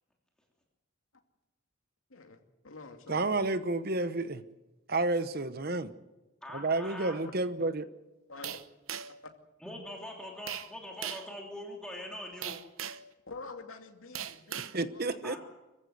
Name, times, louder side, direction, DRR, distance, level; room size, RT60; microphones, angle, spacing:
voice 1, 2.1-3.5 8.3-8.6 9.2-9.3 13.3-15.4, left 3 dB, 80° left, 4 dB, 2.4 m, -47 dB
voice 2, 3.1-4.4 4.9-5.9 6.5-7.9 14.7-15.4, right 2 dB, 45° right, 12 dB, 1.0 m, -30 dB
voice 3, 6.4-7.2 9.6-12.6 15.2-15.4, left 1 dB, 5° left, -1 dB, 3.0 m, -42 dB
sound 1, 8.4-9.3 10.5-10.7 11.0-11.3 12.4-13.1 14.1-14.8, right 9 dB, 80° right, 0.9 m, -39 dB
25.5 x 15.0 x 7.9 m, 1.1 s
head